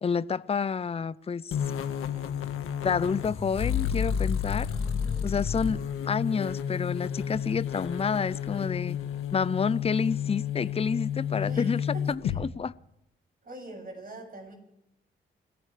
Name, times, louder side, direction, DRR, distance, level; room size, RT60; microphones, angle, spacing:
voice 1, 0.0-1.6 2.8-4.7 5.2-5.8 6.1-9.0 9.3-11.8 12.1-12.7, left 5 dB, 30° left, 0.6 m, -29 dB
sound 1, 1.5-12.4, left 8 dB, 85° left, 1.5 m, -31 dB
voice 2, 4.5-5.5 11.4-12.4 13.4-14.5, right 1 dB, 45° right, 7.2 m, -44 dB
29.0 x 13.0 x 3.4 m
supercardioid pair, 55°, 21 cm